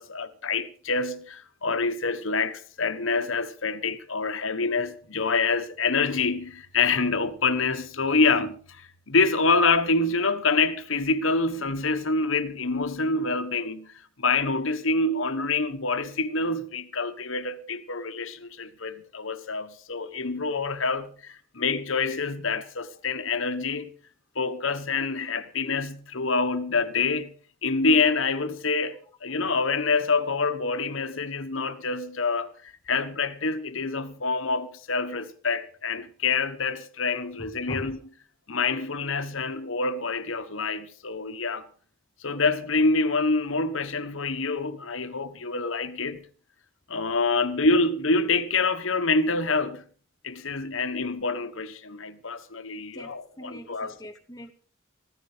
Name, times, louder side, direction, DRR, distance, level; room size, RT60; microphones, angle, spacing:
voice 1, 0.0-23.9 24.3-27.3 27.6-38.0 38.5-41.7 42.2-46.3 46.9-49.8 50.2-53.9, left 3 dB, 75° left, 1.3 m, -26 dB
voice 2, 37.4-38.0 52.9-54.5, left 1 dB, 15° left, 1.0 m, -42 dB
15.5 x 14.5 x 5.1 m
head